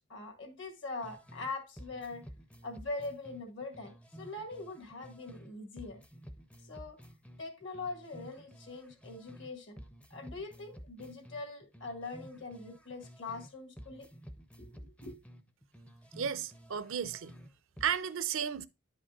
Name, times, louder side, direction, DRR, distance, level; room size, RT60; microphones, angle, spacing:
voice 1, 0.1-2.3 2.6-6.0 6.6-7.0 7.4-9.8 10.1-14.1 14.6-15.2, left 3 dB, 60° left, 1.7 m, -42 dB
sound 1, 1.0-1.5 1.8-5.5 5.8-9.5 9.8-13.5 13.8-17.5 17.8-17.9, equal, 5° left, 0.5 m, -52 dB
voice 2, 16.2-17.3 17.8-18.7, right 8 dB, 75° right, 0.5 m, -33 dB
10.5 x 5.0 x 2.4 m
head